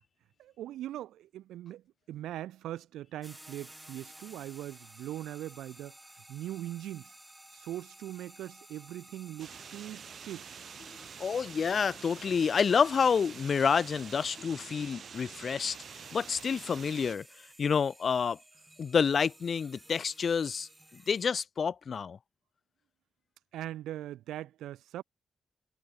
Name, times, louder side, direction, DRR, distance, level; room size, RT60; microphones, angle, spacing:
voice 1, 0.4-5.9 6.3-7.1 7.5-10.5 23.5-25.0, right 13 dB, 85° right, 0.4 m, -41 dB
sound 1, 3.2-21.2, right 1 dB, 15° right, 3.6 m, -54 dB
sound 2, 9.4-17.1, right 7 dB, 65° right, 2.2 m, -47 dB
voice 2, 11.2-17.2 17.6-18.4 18.8-22.2, left 6 dB, 60° left, 1.0 m, -29 dB
supercardioid pair, 50°, 0 cm